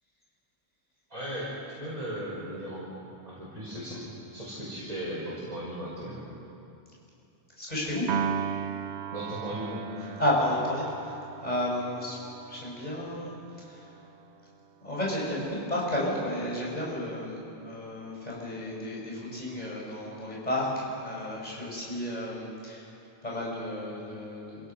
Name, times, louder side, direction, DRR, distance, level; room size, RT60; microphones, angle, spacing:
voice 1, 1.1-1.5 1.8-2.9 3.3-4.0 4.3-6.3 9.1-9.8, equal, 35° right, -9 dB, 5.6 m, -36 dB
voice 2, 7.6-8.1 10.2-12.2 12.5-13.3 13.6-13.9 14.8-22.9 23.2-24.7, left 1 dB, 35° left, -5 dB, 6.2 m, -32 dB
Piano, 8.1-14.5, right 8 dB, 75° right, 0.9 m, -37 dB
29.0 x 17.0 x 5.9 m, 2.7 s
omnidirectional pair, 1.1 m